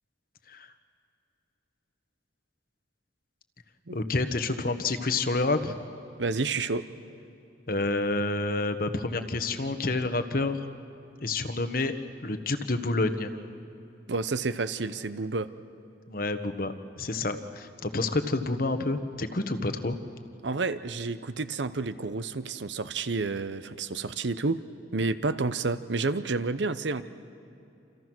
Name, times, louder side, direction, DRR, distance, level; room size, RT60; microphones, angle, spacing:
voice 1, 3.9-5.7 7.7-10.6 11.2-11.9 12.2-13.3 16.1-20.0, left 2 dB, 50° left, 9 dB, 1.3 m, -28 dB
voice 2, 6.2-6.9 14.1-15.5 20.4-24.6 24.9-27.0, right 3 dB, 80° right, 13 dB, 0.9 m, -30 dB
28.0 x 28.0 x 6.2 m, 2.8 s
head